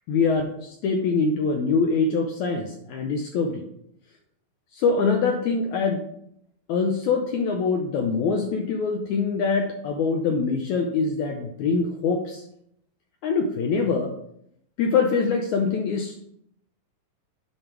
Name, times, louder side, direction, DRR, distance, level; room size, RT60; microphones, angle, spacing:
voice 1, 0.1-3.6 4.7-6.0 6.7-12.4 13.2-14.1 14.8-16.1, left 4 dB, 80° left, 3 dB, 1.7 m, -24 dB
9.6 x 3.5 x 4.5 m, 0.73 s
omnidirectional pair, 4.1 m